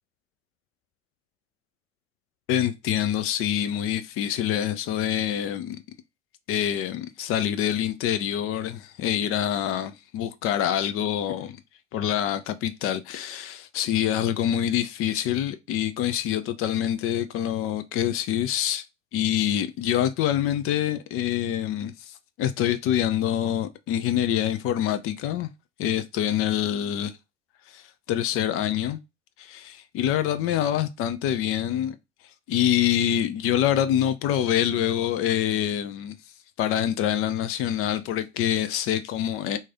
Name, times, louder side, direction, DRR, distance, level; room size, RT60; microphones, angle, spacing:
voice 1, 2.5-5.8 6.5-11.6 11.9-18.8 19.1-25.5 25.8-27.1 27.7-27.8 28.1-29.0 29.4-32.0 32.5-36.2 36.6-39.6, left 11 dB, 40° left, 0.5 m, -26 dB
3.0 x 2.8 x 3.5 m
figure-of-eight pair, 65°, 34 cm